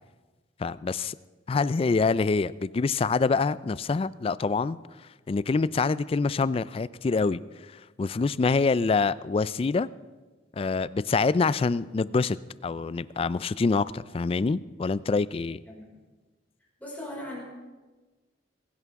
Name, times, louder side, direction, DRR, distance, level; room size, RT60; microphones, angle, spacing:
voice 1, 0.6-1.1 1.5-4.8 5.3-7.4 8.0-9.9 10.6-12.4 12.6-15.6, left 4 dB, 30° left, 18 dB, 0.3 m, -25 dB
voice 2, 16.8-17.4, left 1 dB, 10° left, -5 dB, 5.1 m, -38 dB
21.5 x 11.0 x 3.6 m, 1.2 s
head